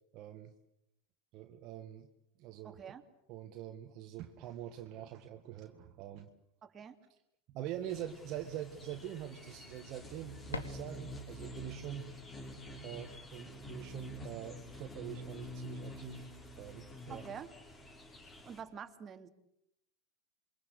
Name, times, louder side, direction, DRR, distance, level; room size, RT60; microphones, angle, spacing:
voice 1, 0.1-0.5 1.3-2.1 2.4-2.8 3.3-6.3 7.5-12.1 12.8-16.3 16.6-17.3, right 11 dB, 45° right, 5 dB, 1.9 m, -44 dB
voice 2, 2.6-3.0 6.6-7.0 17.1-17.5 18.4-19.3, right 7 dB, 25° right, 6 dB, 2.8 m, -47 dB
sound 1, 7.7-13.2, left 4 dB, 85° left, 2.2 m, -50 dB
sound 2, 7.9-18.6, left 1 dB, 20° left, 5.9 m, -48 dB
28.0 x 23.5 x 8.3 m, 0.83 s
hypercardioid pair, 95°, 0 cm